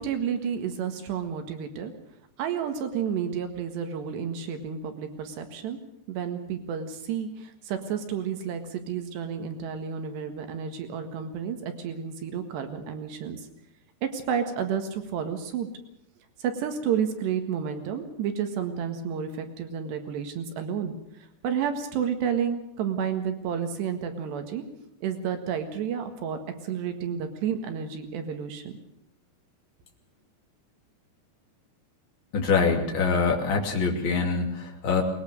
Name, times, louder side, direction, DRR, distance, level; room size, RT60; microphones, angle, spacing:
voice 1, 0.0-1.9 2.4-5.8 6.1-13.5 14.0-15.7 16.4-21.0 21.4-24.6 25.0-28.6, right 7 dB, 80° right, 6 dB, 3.9 m, -31 dB
voice 2, 32.3-35.0, left 5 dB, 35° left, 1 dB, 3.1 m, -24 dB
21.5 x 20.0 x 6.6 m, 0.75 s
omnidirectional pair, 4.9 m